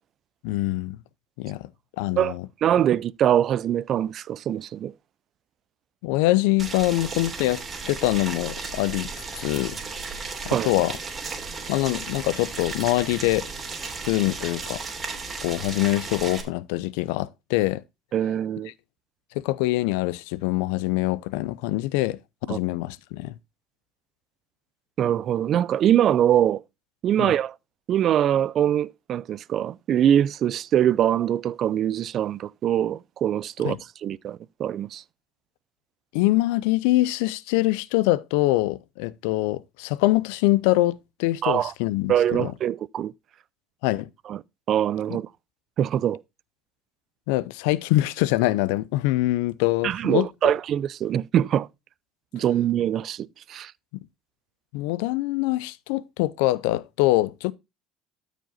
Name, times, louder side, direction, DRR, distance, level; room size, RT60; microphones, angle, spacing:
voice 1, 0.4-1.0 1.4-1.7 2.0-2.5 6.0-9.1 9.4-9.8 10.4-11.0 11.7-13.5 14.1-14.8 15.4-17.8 19.4-22.2 22.5-23.3 27.2-27.3 33.6-33.8 36.1-42.5 43.8-44.1 47.3-50.5 54.7-57.5, left 18 dB, 85° left, 0.5 m, -24 dB
voice 2, 2.2-4.9 10.5-10.7 18.1-18.7 22.5-22.6 25.0-26.6 27.0-27.5 27.9-33.8 34.0-35.0 41.4-41.7 42.1-43.1 44.3-44.4 44.7-45.3 45.8-46.2 49.8-51.7 52.3-53.7, right 10 dB, 50° right, 0.4 m, -23 dB
Boiling, 6.6-16.4, right 4 dB, 25° right, 3.0 m, -35 dB
13.0 x 5.1 x 4.0 m
supercardioid pair, 95°, 0 cm